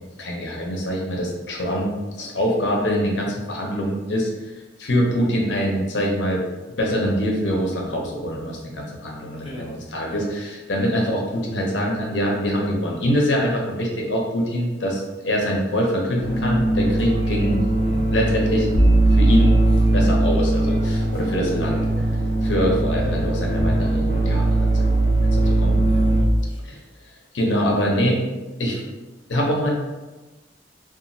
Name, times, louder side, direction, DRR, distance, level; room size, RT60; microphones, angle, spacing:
voice 1, 0.0-1.9 2.2-4.3 4.8-6.4 6.7-17.6 18.1-18.7 19.1-19.5 19.9-21.8 22.4-24.7 25.0-25.1 25.6-25.8 26.6-26.8 27.3-28.2 28.6-28.8 29.3-29.7, equal, 90° left, -1 dB, 0.7 m, -24 dB
voice 2, 9.4-9.8 10.1-10.3 17.8-18.1 21.6-22.0 25.8-26.8, equal, 30° left, -3 dB, 0.5 m, -39 dB
sound 1, 16.2-26.2, right 2 dB, 65° right, 0.9 m, -19 dB
2.9 x 2.4 x 2.6 m, 1.2 s
head